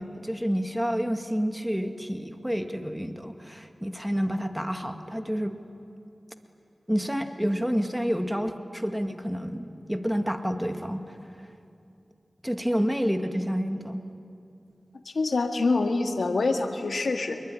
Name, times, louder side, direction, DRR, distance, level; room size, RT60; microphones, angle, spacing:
voice 1, 0.0-5.5 6.9-11.2 12.4-14.0, equal, 5° right, 7 dB, 1.9 m, -29 dB
voice 2, 15.1-17.4, left 3 dB, 85° left, 5 dB, 1.9 m, -25 dB
25.5 x 22.5 x 9.9 m, 2.6 s
cardioid pair, 45°, 0 cm